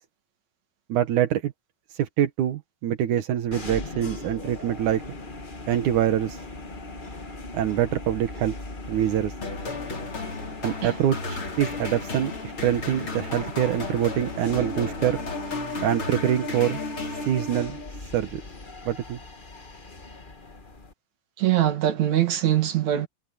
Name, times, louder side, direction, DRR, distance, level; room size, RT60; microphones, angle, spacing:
voice 1, 0.9-1.5 2.0-5.0 5.7-6.4 7.5-8.5 8.9-9.3 10.6-11.2 11.6-12.3 12.6-15.2 15.8-16.8 17.3-17.8 18.1-18.4 18.9-19.2, right 11 dB, 85° right, 2.8 m, -24 dB
sound 1, 3.5-20.9, left 2 dB, 25° left, 1.1 m, -38 dB
sound 2, 9.4-17.8, left 4 dB, 40° left, 4.8 m, -35 dB
voice 2, 21.4-23.1, right 12 dB, 70° right, 3.4 m, -22 dB
omnidirectional pair, 3.4 m